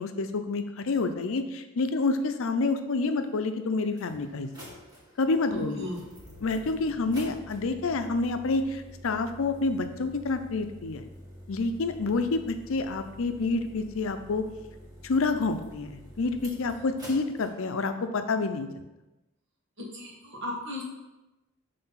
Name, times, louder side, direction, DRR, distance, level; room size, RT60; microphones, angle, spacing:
voice 1, 0.0-4.5 5.2-5.9 6.4-11.0 11.5-14.4 15.0-18.7, left 3 dB, 70° left, 9 dB, 0.5 m, -28 dB
sound 1, 3.2-3.3 3.9-17.5, equal, 20° right, 1.7 m, -48 dB
voice 2, 5.5-6.0 19.8-20.8, left 1 dB, 60° right, -3 dB, 1.7 m, -36 dB
5.8 x 3.3 x 5.6 m, 1.0 s
head